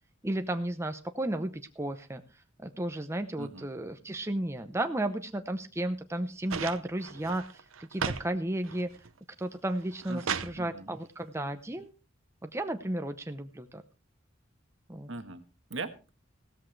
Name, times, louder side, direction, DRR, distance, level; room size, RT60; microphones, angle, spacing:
voice 1, 0.2-2.2 2.6-7.6 7.9-8.9 9.4-11.9 12.4-13.8 14.9-15.1, right 1 dB, 15° right, 7 dB, 0.7 m, -33 dB
voice 2, 3.4-3.7 10.1-10.9 15.1-15.4 15.7-16.1, right 3 dB, 65° right, 9 dB, 1.5 m, -40 dB
sound 1, 6.5-8.3 8.6-9.2 9.7-10.6 11.8-11.9, right 6 dB, 85° right, 0.8 m, -35 dB
16.0 x 14.0 x 3.2 m, 0.31 s
head